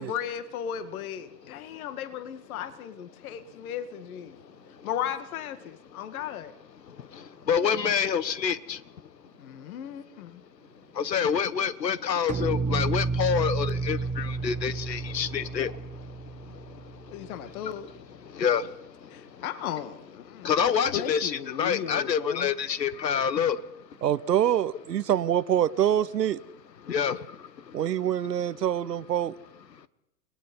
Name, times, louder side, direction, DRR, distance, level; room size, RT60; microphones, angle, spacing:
voice 1, 0.0-4.4 4.8-6.5 9.4-10.4 17.1-17.9 19.1-22.5, left 9 dB, 60° left, 2.2 m, -36 dB
voice 2, 7.5-8.8 11.0-15.7 18.4-18.7 20.4-23.6 26.9-27.2, left 7 dB, 85° left, 1.3 m, -26 dB
sound 1, 12.3-17.5, right 4 dB, 15° right, 1.6 m, -31 dB
voice 3, 24.0-26.4 27.7-29.3, right 10 dB, 80° right, 0.9 m, -25 dB
29.5 x 19.5 x 5.5 m
hypercardioid pair, 100°, 49 cm